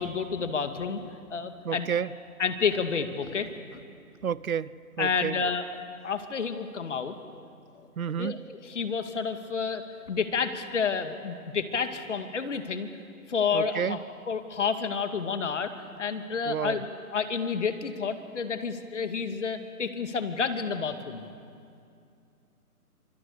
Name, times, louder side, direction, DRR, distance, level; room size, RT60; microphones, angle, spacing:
voice 1, 0.0-1.9 2.4-3.8 5.0-5.6 6.0-7.1 8.2-8.4 8.7-12.9 13.3-14.0 14.3-15.7 16.0-16.9 17.1-21.3, left 5 dB, 50° left, 8 dB, 2.3 m, -30 dB
voice 2, 1.6-2.1 4.2-5.4 8.0-8.4 13.5-14.0 16.4-16.8, right 8 dB, 65° right, 20 dB, 0.8 m, -30 dB
29.5 x 27.0 x 6.7 m, 2.4 s
hypercardioid pair, 165°, 45 cm